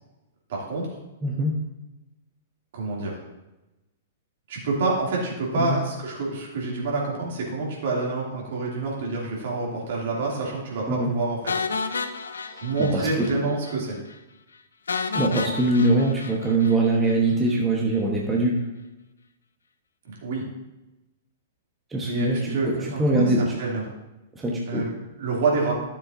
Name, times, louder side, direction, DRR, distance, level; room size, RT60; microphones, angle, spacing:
voice 1, 0.5-0.9 2.7-3.2 4.5-11.6 12.6-14.0 20.0-20.4 22.0-23.8 24.7-25.7, right 3 dB, 55° right, -3 dB, 2.7 m, -27 dB
voice 2, 1.2-1.6 5.5-5.8 10.9-11.1 12.5-13.3 15.1-18.6 21.9-22.4 22.6-23.6 24.3-24.9, right 2 dB, 15° right, -2 dB, 1.1 m, -23 dB
sound 1, 11.5-13.4 13.6-13.8 14.1-14.2 14.9-17.2, left 4 dB, 70° left, 0.6 m, -31 dB
12.5 x 7.1 x 2.7 m, 1.0 s
figure-of-eight pair, 105°, 0 cm